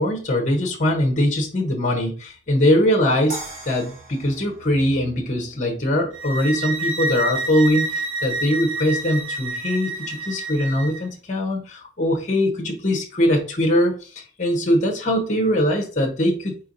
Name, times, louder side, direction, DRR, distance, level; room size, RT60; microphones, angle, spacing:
voice 1, 0.0-16.6, left 1 dB, 40° left, 1 dB, 0.9 m, -22 dB
sound 1, 3.3-6.4, right 2 dB, 45° right, 1.2 m, -39 dB
sound 2, 6.1-11.0, right 2 dB, 90° right, 0.8 m, -28 dB
4.4 x 4.4 x 2.6 m, 0.38 s
head